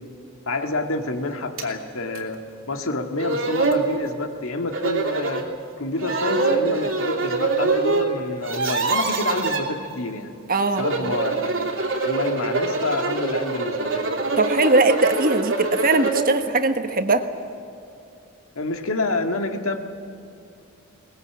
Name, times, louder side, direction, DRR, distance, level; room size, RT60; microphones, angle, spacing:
voice 1, 0.5-5.5 5.8-10.3 10.7-11.7 12.0-14.1 18.6-19.8, left 2 dB, 80° left, 5 dB, 1.9 m, -28 dB
sound 1, 1.6-1.7 2.1-2.2 2.9-3.0 3.2-3.8 4.7-5.5 6.0-8.0 8.3-9.6 10.6-16.3, right 3 dB, 70° right, 2.9 m, -24 dB
voice 2, 10.5-11.1 14.4-17.2, right 2 dB, 45° right, 7 dB, 1.4 m, -20 dB
22.0 x 20.0 x 8.6 m, 2.6 s
head